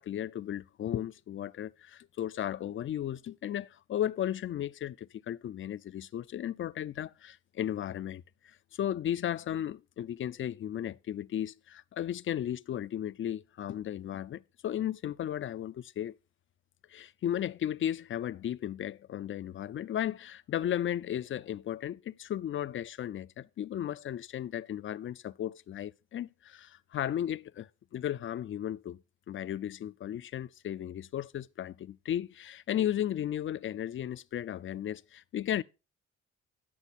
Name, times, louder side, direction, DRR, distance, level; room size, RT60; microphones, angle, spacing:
voice 1, 0.0-16.1 16.9-29.0 29.3-35.6, left 11 dB, 45° left, 0.4 m, -35 dB
10.0 x 6.4 x 4.1 m
cardioid pair, 90°, 30 cm